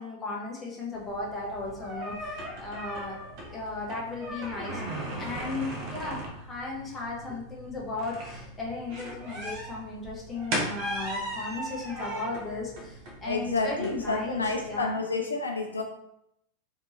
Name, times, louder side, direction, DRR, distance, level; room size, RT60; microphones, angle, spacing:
voice 1, 0.0-3.2 3.5-4.8 5.2-15.0, left 3 dB, 15° left, -4 dB, 1.1 m, -36 dB
sound 1, 0.9-14.8, right 1 dB, 45° right, 0.8 m, -38 dB
voice 2, 13.3-15.8, left 3 dB, 75° left, 2 dB, 0.4 m, -29 dB
3.3 x 3.0 x 2.8 m, 0.80 s
figure-of-eight pair, 90°, 0 cm